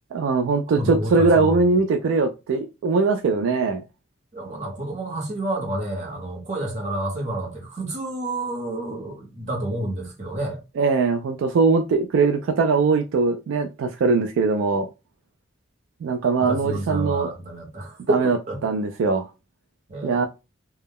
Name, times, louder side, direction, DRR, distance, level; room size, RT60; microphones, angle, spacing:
voice 1, 0.1-3.8 10.8-14.9 16.0-17.3 18.1-18.4 18.6-19.3 20.0-20.3, right 4 dB, 75° right, 0.3 m, -21 dB
voice 2, 0.8-1.8 4.3-10.6 16.4-18.6 19.9-20.3, right 1 dB, 35° right, 0.9 m, -29 dB
2.2 x 2.0 x 3.4 m
head